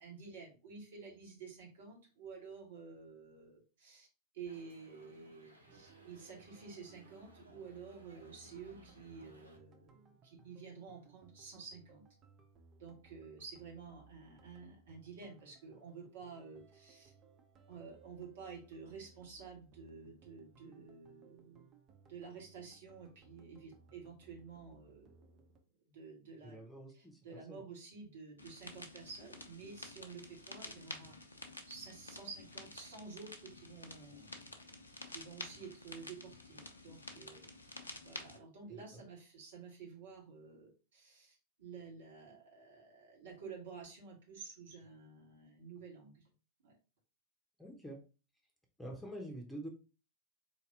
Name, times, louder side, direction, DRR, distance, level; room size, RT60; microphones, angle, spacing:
voice 1, 0.0-4.1 4.3-12.1 12.8-17.1 17.7-21.6 22.1-25.3 25.9-26.6 26.9-31.2 31.7-34.6 35.1-37.4 38.0-46.2 46.6-46.8, right 5 dB, 60° right, -1 dB, 1.7 m, -51 dB
sound 1, 4.4-9.6, right 1 dB, 85° right, 0.8 m, -62 dB
sound 2, 5.7-25.6, right 4 dB, 30° right, 0.8 m, -64 dB
voice 2, 26.4-27.6 38.7-39.0 47.6-48.0 48.8-49.7, right 1 dB, 5° left, 1 dB, 1.1 m, -47 dB
sound 3, 28.4-38.4, left 2 dB, 80° left, 0.6 m, -50 dB
4.1 x 2.9 x 3.9 m, 0.33 s
figure-of-eight pair, 90°, 0 cm